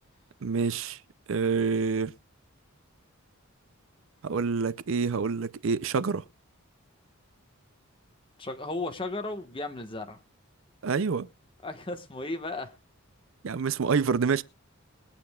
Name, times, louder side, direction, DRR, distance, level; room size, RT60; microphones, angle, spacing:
voice 1, 0.4-1.0 1.3-2.1 4.2-6.2 10.8-11.3 13.4-14.4, right 5 dB, 60° right, 0.5 m, -27 dB
voice 2, 8.4-10.2 11.6-12.7, left 2 dB, 25° left, 1.3 m, -35 dB
22.5 x 8.7 x 2.3 m
head